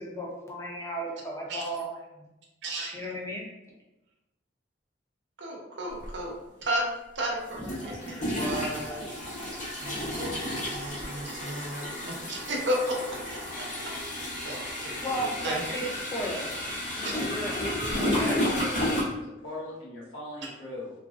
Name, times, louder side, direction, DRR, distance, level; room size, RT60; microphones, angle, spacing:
voice 1, 0.0-2.2 2.9-3.5 15.0-16.5 17.0-18.4, equal, 15° left, -3 dB, 0.5 m, -35 dB
voice 2, 2.6-3.0 5.4-6.8 7.1-13.0 13.6-13.9 14.2-15.8 17.9-18.0, right 1 dB, 70° right, -1 dB, 0.6 m, -34 dB
sound 1, 6.0-6.1 7.5-19.0, left 1 dB, 40° left, 0.9 m, -32 dB
voice 3, 17.9-20.9, left 1 dB, 70° left, -4 dB, 0.9 m, -39 dB
3.0 x 2.5 x 2.4 m, 0.97 s
head